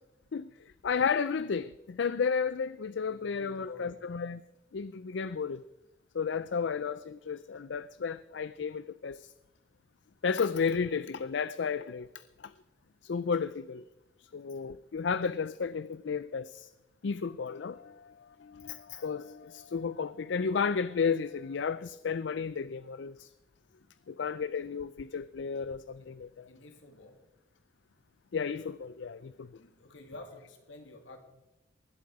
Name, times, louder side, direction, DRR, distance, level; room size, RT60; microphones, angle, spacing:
voice 1, 0.3-4.4 4.7-5.6 6.1-9.3 10.2-12.5 13.0-13.8 14.2-16.7 17.0-23.3 24.1-26.5 28.3-29.5, left 5 dB, 75° left, 0.4 m, -33 dB
voice 2, 3.1-4.0 6.3-6.6 23.8-24.1 26.0-26.1 26.5-27.2 29.6-31.2, left 2 dB, 90° left, 2.6 m, -50 dB
19.5 x 11.5 x 4.8 m
head